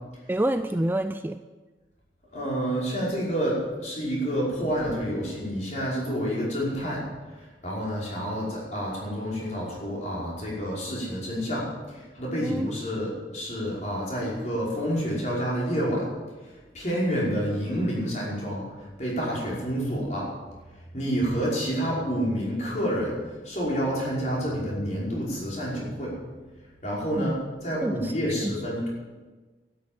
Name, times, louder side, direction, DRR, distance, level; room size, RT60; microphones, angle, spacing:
voice 1, 0.3-1.4 12.4-12.7 27.2-27.3 27.8-28.5, right 1 dB, 10° right, 10 dB, 0.3 m, -28 dB
voice 2, 2.3-7.0 7.6-11.7 12.1-16.1 16.7-18.7 19.0-20.3 20.9-23.2 23.4-26.1 26.8-28.9, equal, 40° left, -5 dB, 5.4 m, -28 dB
12.5 x 9.8 x 9.1 m, 1.3 s
head